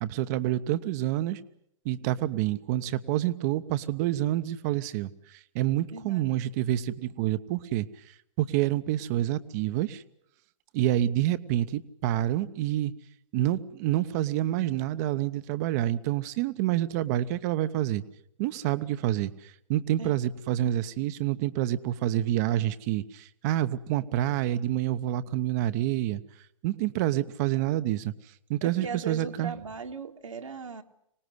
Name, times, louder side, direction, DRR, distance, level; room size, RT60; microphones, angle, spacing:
voice 1, 0.0-1.4 1.8-7.9 8.4-10.0 10.7-12.9 13.3-18.0 18.4-26.2 26.6-28.1 28.5-29.5, right 13 dB, 30° right, 13 dB, 0.9 m, -28 dB
voice 2, 5.9-6.4 20.0-20.2 28.6-30.8, right 5 dB, 70° right, 5 dB, 1.8 m, -38 dB
25.5 x 19.0 x 8.1 m, 0.77 s
figure-of-eight pair, 125°, 17 cm